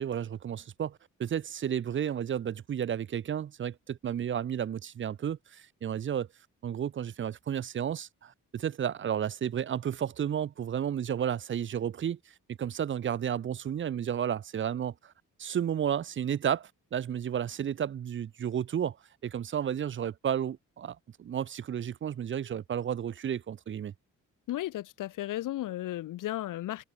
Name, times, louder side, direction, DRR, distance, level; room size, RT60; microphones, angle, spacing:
voice 1, 0.0-6.3 6.6-12.2 12.6-15.1 15.4-19.0 19.2-23.9, right 9 dB, 40° right, 0.4 m, -32 dB
voice 2, 24.5-26.8, left 14 dB, 75° left, 0.5 m, -34 dB
cardioid pair, 70°, 32 cm